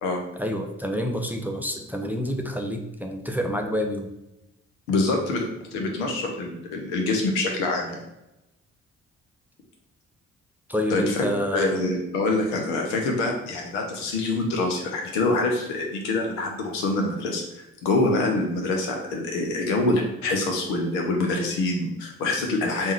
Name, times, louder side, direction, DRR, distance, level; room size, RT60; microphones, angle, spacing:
voice 1, 0.4-4.1 10.7-11.8, equal, 5° right, 3 dB, 0.6 m, -28 dB
voice 2, 4.9-5.5 5.7-8.0 10.9-22.9, left 2 dB, 75° left, 1 dB, 0.9 m, -25 dB
3.6 x 2.7 x 4.5 m, 0.92 s
figure-of-eight pair, 40°, 36 cm